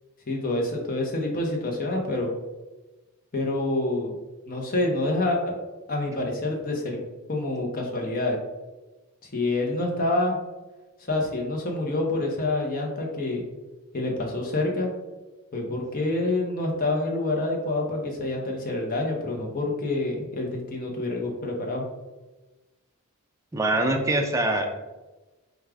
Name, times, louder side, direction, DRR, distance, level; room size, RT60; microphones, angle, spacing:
voice 1, 0.3-2.3 3.3-4.1 4.5-5.5 5.9-7.0 7.3-8.4 9.3-10.4 11.1-13.4 13.9-14.9 15.5-21.9, left 2 dB, 40° left, 0 dB, 0.7 m, -27 dB
voice 2, 23.5-24.8, right 1 dB, 15° right, 3 dB, 0.3 m, -24 dB
4.7 x 2.3 x 3.4 m, 1.1 s
head